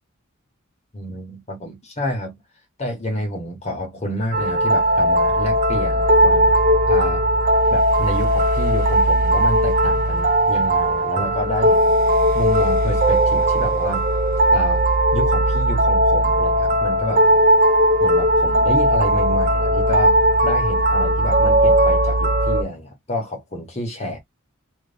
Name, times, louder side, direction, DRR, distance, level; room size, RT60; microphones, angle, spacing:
voice 1, 0.9-2.3 2.8-6.5 6.9-7.2 7.7-12.0 12.3-14.1 14.5-14.9 15.1-17.2 18.0-24.2, left 1 dB, 30° left, 1.2 m, -29 dB
sound 1, 4.3-22.6, right 1 dB, 40° right, 0.6 m, -17 dB
3.1 x 2.8 x 3.4 m
head